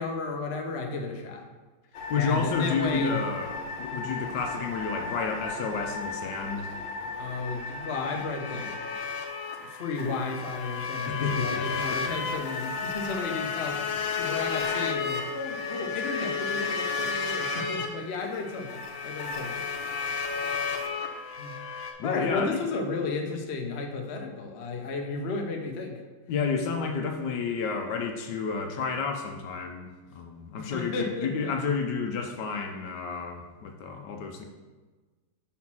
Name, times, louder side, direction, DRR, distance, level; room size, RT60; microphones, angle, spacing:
voice 1, 0.0-1.4 2.1-3.2 7.1-8.8 9.6-13.8 14.2-20.0 21.4-21.6 22.0-26.0 30.5-31.6, left 4 dB, 55° left, 2 dB, 0.7 m, -33 dB
sound 1, 1.9-21.9, left 4 dB, 85° left, 1.6 m, -33 dB
voice 2, 2.1-6.7 11.1-12.0 22.0-22.6 26.3-34.4, left 5 dB, 70° left, 4 dB, 1.2 m, -31 dB
5.7 x 4.2 x 6.0 m, 1.3 s
omnidirectional pair, 2.1 m